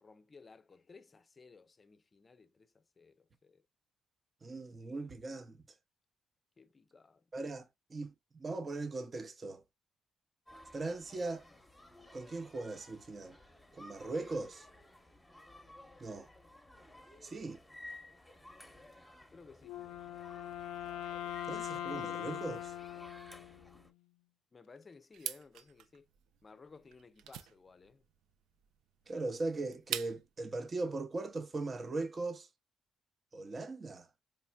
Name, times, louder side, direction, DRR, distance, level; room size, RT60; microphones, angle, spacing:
voice 1, 0.0-3.6 6.6-7.3 19.3-19.8 24.5-26.1 26.4-28.0, left 4 dB, 30° left, 0.5 m, -58 dB
voice 2, 4.4-5.6 7.3-9.6 10.7-11.5 12.1-13.4 13.7-14.7 16.0-16.3 17.2-17.6 21.5-22.7 29.1-32.5 33.3-34.1, right 3 dB, 35° right, 0.6 m, -39 dB
sound 1, 10.5-23.9, left 1 dB, 5° left, 0.9 m, -56 dB
Wind instrument woodwind instrument, 19.6-23.9, left 11 dB, 85° left, 0.3 m, -41 dB
sound 2, 25.1-30.4, right 10 dB, 90° right, 0.4 m, -44 dB
4.1 x 3.2 x 2.2 m
cardioid pair, 90°, 0 cm